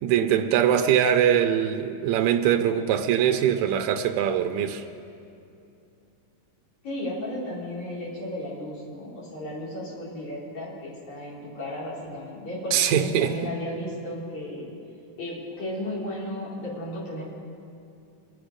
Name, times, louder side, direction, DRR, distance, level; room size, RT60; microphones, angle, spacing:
voice 1, 0.0-4.8 12.7-13.3, right 9 dB, 85° right, 6 dB, 1.7 m, -22 dB
voice 2, 6.8-14.7 15.2-17.2, left 1 dB, 60° left, -7 dB, 4.7 m, -34 dB
23.5 x 8.1 x 5.1 m, 2.6 s
omnidirectional pair, 3.9 m